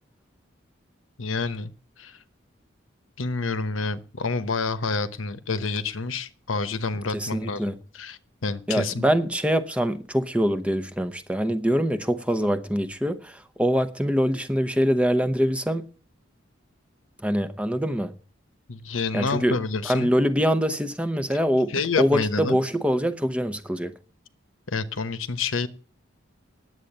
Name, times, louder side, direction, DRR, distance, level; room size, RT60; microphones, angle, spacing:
voice 1, 1.2-1.7 2.0-2.2 3.2-9.1 18.7-20.2 21.7-22.6 24.7-25.7, left 4 dB, 90° left, 1.0 m, -28 dB
voice 2, 7.1-7.7 8.7-15.9 17.2-18.1 19.1-19.6 19.8-23.9, equal, 5° right, 0.7 m, -24 dB
9.9 x 7.9 x 8.8 m
head